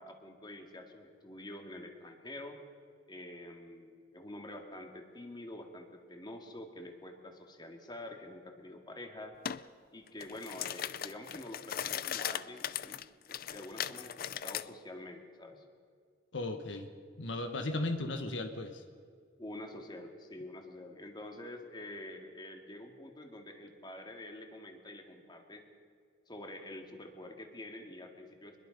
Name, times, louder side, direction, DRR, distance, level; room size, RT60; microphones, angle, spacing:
voice 1, 0.0-2.6 3.1-9.4 9.9-15.6 19.4-25.7 26.3-28.6, left 1 dB, 20° left, 4 dB, 2.1 m, -47 dB
sound 1, 9.4-9.6 10.1-14.6, left 10 dB, 50° left, 0.5 m, -38 dB
voice 2, 16.3-16.9 17.2-18.8, left 2 dB, 70° left, 7 dB, 1.3 m, -36 dB
24.0 x 21.5 x 5.3 m, 2.1 s
head